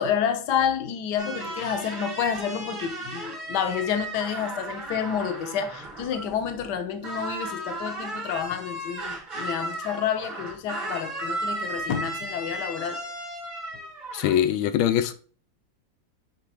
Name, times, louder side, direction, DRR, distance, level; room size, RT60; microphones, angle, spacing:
voice 1, 0.0-13.0, left 8 dB, 65° left, 1.3 m, -29 dB
sound 1, 1.2-6.8 7.0-14.4, right 2 dB, 80° right, 3.7 m, -35 dB
voice 2, 14.1-15.1, left 10 dB, 90° left, 1.4 m, -22 dB
10.0 x 3.4 x 3.4 m
omnidirectional pair, 2.2 m